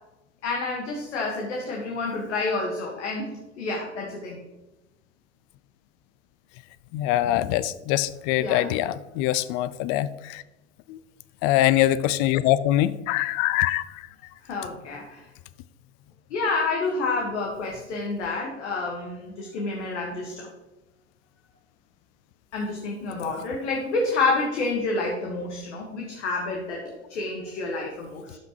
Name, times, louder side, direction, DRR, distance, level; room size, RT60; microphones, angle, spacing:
voice 1, 0.4-3.3 3.6-4.4 8.4-8.6 14.4-15.3 16.3-20.5 22.5-26.8 27.1-28.4, left 3 dB, 75° left, -1 dB, 1.6 m, -29 dB
voice 2, 6.9-10.4 10.9-11.0 11.4-14.1, left 14 dB, 55° left, 17 dB, 0.6 m, -23 dB
13.0 x 5.8 x 3.0 m, 1.0 s
hypercardioid pair, 80°, 35 cm